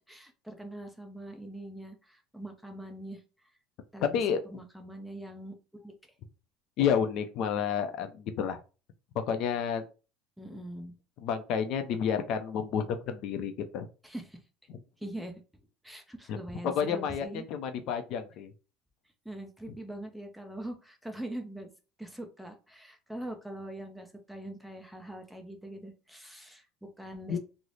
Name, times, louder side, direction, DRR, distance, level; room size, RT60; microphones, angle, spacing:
voice 1, 0.0-3.2 3.9-5.9 10.4-10.9 14.0-14.4 15.0-15.4 15.8-17.4 19.2-21.7 22.0-27.4, right 1 dB, ahead, 4 dB, 0.5 m, -42 dB
voice 2, 6.8-8.6 9.3-9.8 10.5-10.6 11.2-13.9 14.7-14.8 16.3-16.4 16.6-18.5 27.3-27.4, left 7 dB, 50° left, 8 dB, 0.4 m, -30 dB
3.1 x 2.0 x 3.8 m, 0.33 s
cardioid pair, 145°, 0 cm